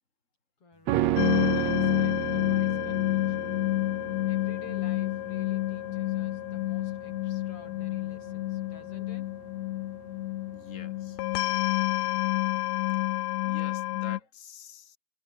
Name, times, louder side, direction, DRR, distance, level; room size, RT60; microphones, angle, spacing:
voice 1, 0.6-3.6 4.2-9.4, left 3 dB, 50° left, 6.4 m, -53 dB
sound 1, 0.9-10.3 10.6-10.7, right 14 dB, 70° right, 2.0 m, -33 dB
sound 2, 1.2-14.2, left 18 dB, 80° left, 1.8 m, -29 dB
voice 2, 10.5-11.2 11.7-11.8 13.4-15.0, left 5 dB, 25° left, 4.5 m, -47 dB
omnidirectional pair, 3.3 m